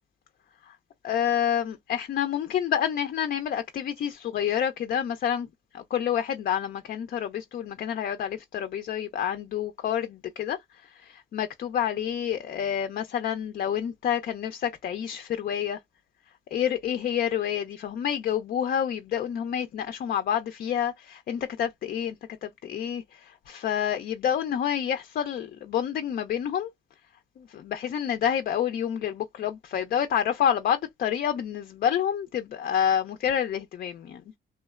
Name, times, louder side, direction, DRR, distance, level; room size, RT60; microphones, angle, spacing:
voice 1, 1.0-5.5 5.7-15.8 16.5-22.2 22.4-26.7 27.4-34.2, left 9 dB, 50° left, 0.4 m, -28 dB
3.0 x 2.0 x 2.3 m
cardioid pair, 90°, 20 cm